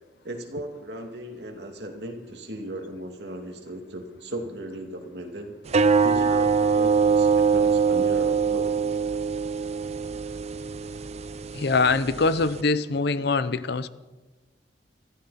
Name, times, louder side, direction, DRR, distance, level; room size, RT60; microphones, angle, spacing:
voice 1, 0.2-5.6 6.0-8.9, right 1 dB, 70° right, 3 dB, 2.4 m, -37 dB
sound 1, 5.7-12.6, right 5 dB, 40° right, 0.6 m, -23 dB
voice 2, 11.5-13.9, left 4 dB, 65° left, 15 dB, 0.7 m, -23 dB
24.0 x 14.5 x 4.2 m, 1.2 s
head